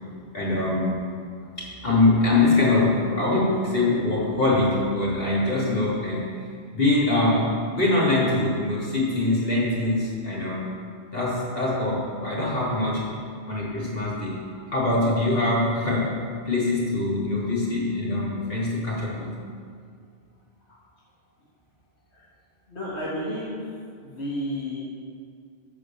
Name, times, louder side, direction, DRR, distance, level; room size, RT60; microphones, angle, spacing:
voice 1, 0.3-1.0 1.6-6.2 6.7-10.7 11.1-13.1 13.5-14.4 14.7-16.1 16.4-19.3, left 2 dB, 60° left, -7 dB, 3.1 m, -23 dB
voice 2, 22.7-23.6 24.0-24.8, equal, 75° left, -8 dB, 2.0 m, -31 dB
13.5 x 5.1 x 7.3 m, 2.2 s
omnidirectional pair, 1.1 m